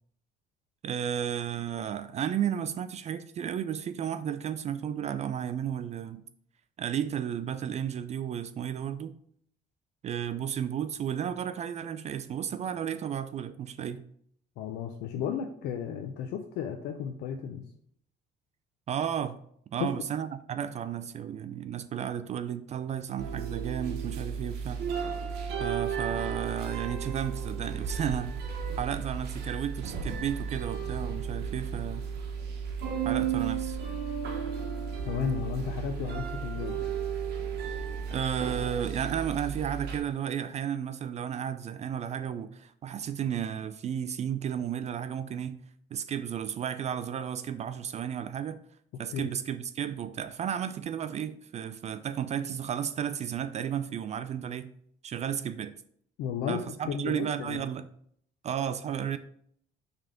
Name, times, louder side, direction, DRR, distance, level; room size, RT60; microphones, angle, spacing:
voice 1, 0.8-6.2 6.8-9.1 10.0-14.0 18.9-19.4 19.7-24.8 25.6-32.1 33.0-33.8 38.1-45.6 45.9-48.6 49.0-54.7 55.0-55.7 56.5-57.9 58.4-59.2, right 9 dB, 40° right, 0.4 m, -33 dB
voice 2, 14.6-17.6 19.8-19.9 35.1-36.8 49.1-49.3 56.2-57.6, left 7 dB, 85° left, 0.6 m, -33 dB
sound 1, 23.2-40.0, right 7 dB, 75° right, 1.1 m, -34 dB
5.6 x 3.5 x 5.0 m
cardioid pair, 110°, 17 cm